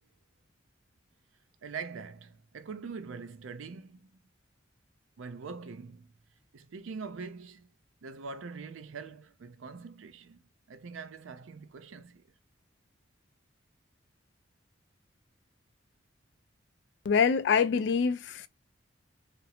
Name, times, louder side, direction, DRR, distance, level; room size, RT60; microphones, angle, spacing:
voice 1, 1.6-4.1 5.2-6.1 6.5-7.7 8.0-10.4 10.7-12.2, right 5 dB, 80° right, 0.5 m, -43 dB
voice 2, 17.1-18.5, left 6 dB, 55° left, 0.3 m, -25 dB
2.5 x 2.0 x 2.8 m
head